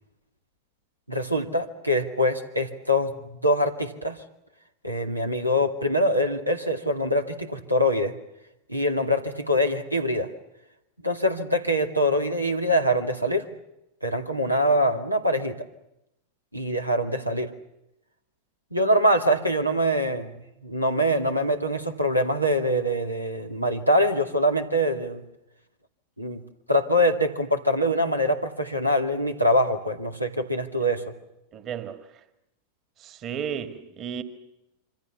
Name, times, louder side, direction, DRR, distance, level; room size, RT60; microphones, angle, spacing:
voice 1, 1.1-4.2 4.8-8.1 8.7-10.3 11.0-13.5 14.0-15.6 16.5-17.5 18.7-20.3 20.6-25.2 26.2-26.4 26.7-31.0, equal, 90° right, 2.3 m, -24 dB
voice 2, 31.5-32.2 33.0-34.2, right 8 dB, 30° right, 2.2 m, -34 dB
27.0 x 26.0 x 7.2 m
figure-of-eight pair, 90°, 0 cm